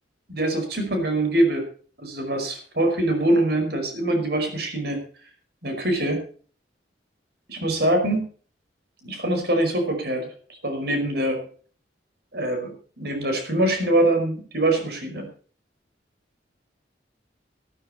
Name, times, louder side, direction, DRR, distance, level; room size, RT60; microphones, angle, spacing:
voice 1, 0.3-1.7 2.0-5.0 5.6-6.2 7.5-8.3 9.0-11.4 12.3-15.3, right 1 dB, 55° right, 5 dB, 5.2 m, -24 dB
16.0 x 14.0 x 4.3 m, 0.43 s
head